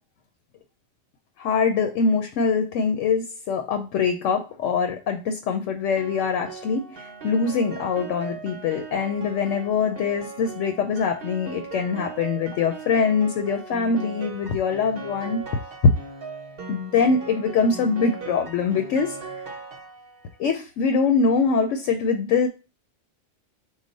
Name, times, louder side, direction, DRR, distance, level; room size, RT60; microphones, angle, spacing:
voice 1, 1.4-15.4 16.7-19.5 20.4-22.5, left 5 dB, 90° left, 6 dB, 0.9 m, -23 dB
Piano, 6.0-20.3, right 4 dB, 55° right, 0.8 m, -39 dB
4.8 x 2.2 x 4.0 m, 0.31 s
omnidirectional pair, 1.2 m